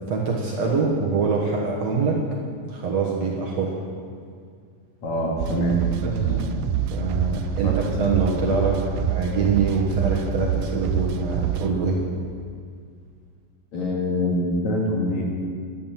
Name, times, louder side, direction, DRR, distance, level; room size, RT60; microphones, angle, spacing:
voice 1, 0.1-2.2 2.7-3.8 6.0-6.1 6.9-12.0, right 4 dB, 60° right, -3 dB, 2.0 m, -24 dB
voice 2, 5.0-5.8 6.2-6.5 7.6-7.7 13.7-15.2, equal, 55° left, -2 dB, 3.1 m, -24 dB
sound 1, 5.4-11.7, right 9 dB, 85° right, 2.3 m, -26 dB
11.0 x 11.0 x 7.3 m, 2.2 s
omnidirectional pair, 4.1 m